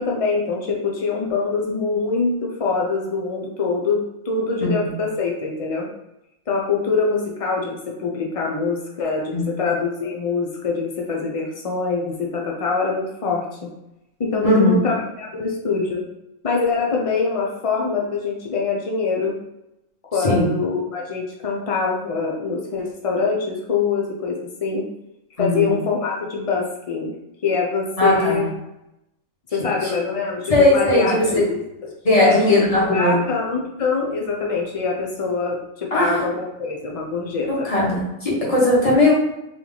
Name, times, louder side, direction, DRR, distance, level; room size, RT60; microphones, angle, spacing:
voice 1, 0.0-5.9 6.5-13.4 14.2-16.0 16.4-19.4 20.1-24.9 25.4-27.1 27.4-28.5 29.5-31.6 32.2-37.7, left 4 dB, 65° left, -1 dB, 0.3 m, -24 dB
voice 2, 4.6-4.9 9.3-9.4 14.4-14.7 20.2-20.5 25.4-25.7 28.0-28.4 29.8-29.9 30.5-31.4 32.0-33.2 35.9-36.2 37.5-39.1, left 1 dB, 25° left, -5 dB, 1.3 m, -18 dB
3.5 x 3.0 x 3.9 m, 0.87 s
omnidirectional pair, 1.5 m